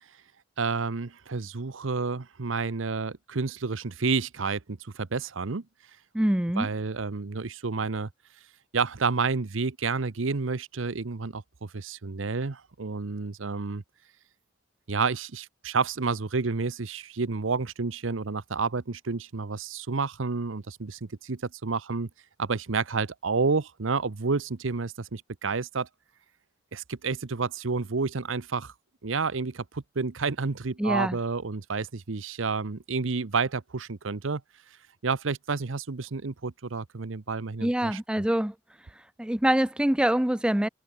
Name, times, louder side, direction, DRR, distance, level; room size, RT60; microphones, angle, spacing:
voice 1, 0.6-5.6 6.6-8.1 8.7-13.8 14.9-22.1 22.4-25.9 26.7-28.7 29.0-34.4 35.0-38.0, right 4 dB, 90° right, 0.9 m, -30 dB
voice 2, 6.1-6.7 30.8-31.2 37.6-38.5 39.2-40.7, right 1 dB, 5° right, 0.4 m, -25 dB
head